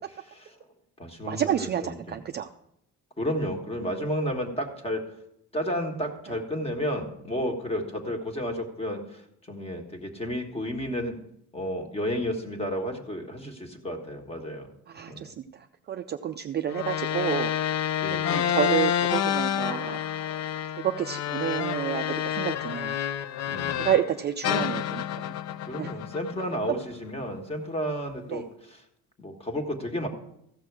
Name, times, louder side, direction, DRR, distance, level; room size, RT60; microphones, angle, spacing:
voice 1, 0.1-0.6 1.0-2.2 3.2-5.1 5.5-11.2 11.5-14.7 15.1-15.3 18.0-18.5 23.4-23.9 24.5-24.7 25.7-28.8 29.2-30.1, equal, 15° left, 4 dB, 1.5 m, -32 dB
voice 2, 1.3-2.5 14.9-15.3 15.9-17.5 18.3-20.0 20.8-22.0 22.4-23.0 23.8-24.8 25.2-25.3 25.8-25.9 28.3-28.4, right 10 dB, 30° right, 7 dB, 0.4 m, -29 dB
sound 1, 16.7-24.1 24.4-26.8, left 10 dB, 50° left, 0.5 m, -29 dB
15.0 x 6.2 x 4.7 m, 0.76 s
cardioid pair, 140°, 34 cm